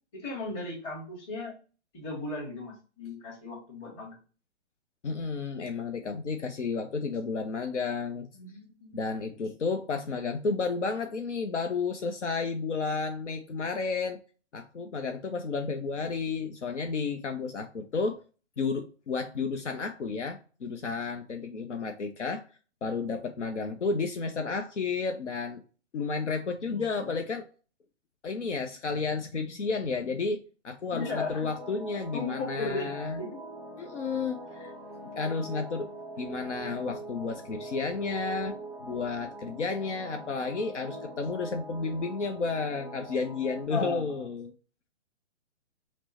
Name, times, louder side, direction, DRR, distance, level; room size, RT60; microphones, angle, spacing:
voice 1, 0.1-1.5 1.9-4.2 8.3-9.0 26.6-27.2 30.9-31.5 32.1-33.4 43.7-44.3, left 3 dB, 25° left, -3 dB, 1.6 m, -36 dB
voice 2, 5.0-8.3 8.9-14.2 14.5-18.2 18.6-22.4 22.8-25.6 25.9-27.5 28.2-33.2 33.8-34.7 35.2-35.9 36.2-44.5, left 4 dB, 75° left, 5 dB, 0.6 m, -32 dB
sound 1, 31.0-43.7, right 1 dB, 5° left, 0.5 m, -43 dB
5.9 x 2.1 x 2.9 m, 0.36 s
figure-of-eight pair, 130°, 35 cm